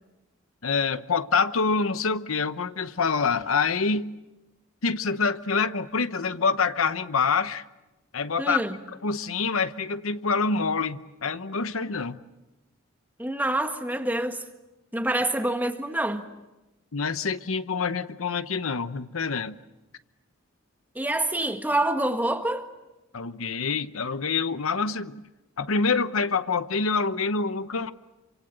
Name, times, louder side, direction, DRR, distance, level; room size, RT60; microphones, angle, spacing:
voice 1, 0.6-4.1 4.8-7.6 8.1-8.6 9.0-12.2 16.9-19.5 23.1-25.2 25.6-27.9, left 4 dB, 75° left, 0.9 m, -26 dB
voice 2, 8.4-8.8 13.2-14.4 14.9-16.3 21.0-22.7, right 1 dB, 10° right, 1.7 m, -26 dB
28.5 x 25.0 x 7.8 m
head